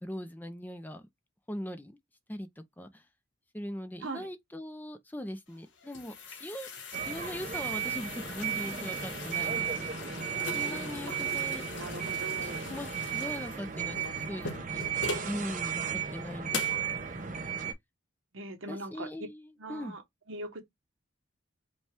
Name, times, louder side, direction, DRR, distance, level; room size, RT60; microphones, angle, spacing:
voice 1, 0.0-1.1 1.5-2.0 2.3-3.0 3.5-9.9 10.5-11.7 12.4-14.8 15.3-16.6 18.4-19.9, equal, 10° left, 0.5 m, -41 dB
sound 1, 5.5-15.4 15.9-16.0 16.5-16.9, left 4 dB, 65° left, 1.1 m, -41 dB
sound 2, 6.9-17.7, right 8 dB, 40° right, 0.7 m, -34 dB
voice 2, 11.7-12.8 18.3-19.1 19.6-20.0 20.3-20.6, right 2 dB, 80° right, 1.1 m, -41 dB
5.2 x 2.3 x 3.3 m
head